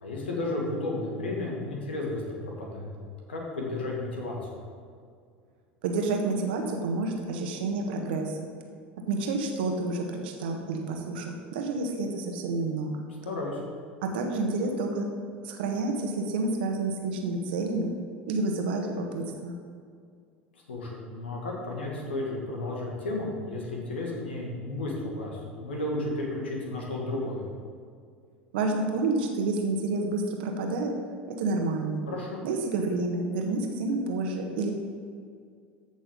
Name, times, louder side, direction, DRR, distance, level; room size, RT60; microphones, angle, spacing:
voice 1, 0.0-4.4 13.2-13.6 20.5-27.4 32.1-32.4, left 2 dB, 75° left, -2 dB, 2.2 m, -33 dB
voice 2, 5.8-8.5 9.0-13.0 14.0-15.1 15.4-17.9 18.3-19.6 28.5-30.9 31.3-32.0 32.4-34.7, right 3 dB, 65° right, 3 dB, 1.4 m, -29 dB
14.0 x 6.2 x 3.9 m, 2.2 s
figure-of-eight pair, 75°, 6 cm